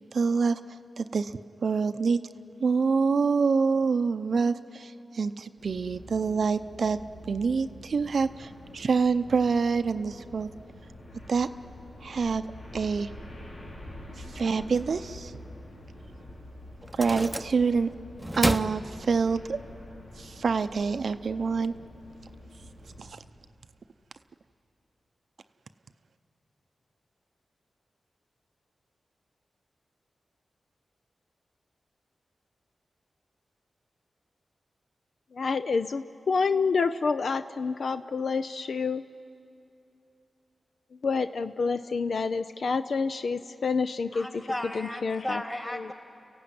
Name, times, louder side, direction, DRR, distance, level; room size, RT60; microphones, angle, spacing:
voice 1, 0.1-0.6 1.0-2.2 2.6-7.0 7.3-10.5 11.3-11.5 12.0-12.4 12.7-13.1 14.2-15.3 16.9-17.9 18.4-19.6 20.2-21.7 23.0-23.2, right 5 dB, 70° right, 10 dB, 0.6 m, -26 dB
sound 1, 5.6-23.1, left 1 dB, 90° left, 4.9 m, -46 dB
sound 2, 16.1-16.2 16.8-17.9 18.2-19.6, equal, 5° right, 0.8 m, -31 dB
voice 2, 35.3-39.0 41.0-44.4 44.7-45.4 45.7-45.9, left 4 dB, 70° left, 10 dB, 0.5 m, -28 dB
voice 3, 44.1-45.9, left 1 dB, 20° left, 2 dB, 3.2 m, -35 dB
29.5 x 15.0 x 9.4 m, 2.7 s
cardioid pair, 70°, 0 cm